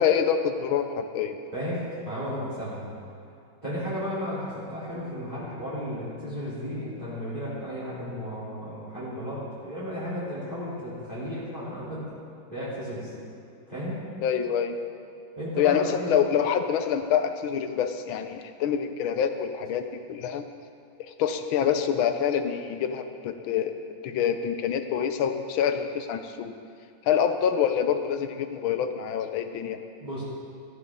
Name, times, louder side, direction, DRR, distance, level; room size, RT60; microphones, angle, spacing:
voice 1, 0.0-1.4 14.2-14.8 15.6-20.4 21.0-26.5 27.0-29.8, left 8 dB, 90° left, 8 dB, 1.6 m, -26 dB
voice 2, 1.5-2.9 3.6-12.1 12.5-13.1 13.7-14.1 15.4-16.1 30.0-30.2, equal, 20° right, -11 dB, 3.3 m, -34 dB
14.5 x 14.0 x 3.7 m, 2.5 s
omnidirectional pair, 2.1 m